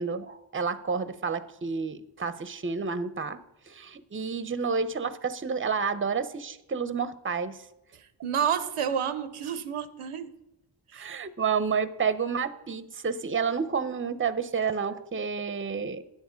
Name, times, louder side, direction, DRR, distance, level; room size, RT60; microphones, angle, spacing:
voice 1, 0.0-3.4 3.7-7.7 10.9-16.0, right 5 dB, 25° right, 14 dB, 0.7 m, -30 dB
voice 2, 7.9-10.3 10.9-11.1, right 8 dB, 85° right, 12 dB, 0.7 m, -30 dB
9.8 x 8.0 x 5.1 m, 0.88 s
cardioid pair, 40°, 50 cm